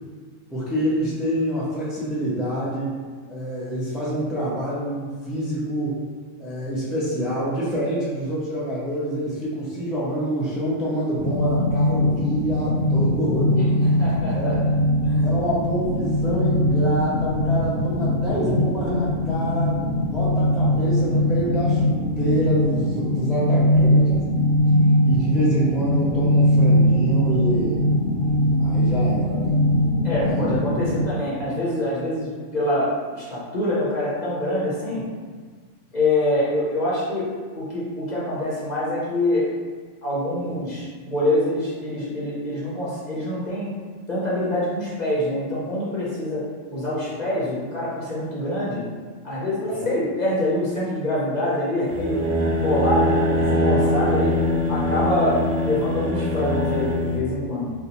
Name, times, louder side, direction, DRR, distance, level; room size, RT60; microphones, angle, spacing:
voice 1, 0.5-3.0 3.3-6.1 6.4-13.7 14.3-14.6 15.2-24.2 25.1-27.8 28.6-29.6 30.2-30.6 49.7-49.8 54.1-54.2, right 1 dB, ahead, -8 dB, 0.4 m, -27 dB
sound 1, 11.2-31.0, equal, 90° right, 1.1 m, -21 dB
voice 2, 14.0-14.5 15.0-15.2 30.0-35.0 35.9-37.3 37.5-39.5 40.0-43.7 44.1-46.4 46.7-48.8 49.2-52.2 52.5-54.4 54.7-57.7, left 1 dB, 40° left, -8 dB, 0.8 m, -25 dB
sound 2, 51.9-57.2, left 1 dB, 60° right, 0.6 m, -22 dB
2.7 x 2.4 x 4.1 m, 1.5 s
omnidirectional pair, 1.3 m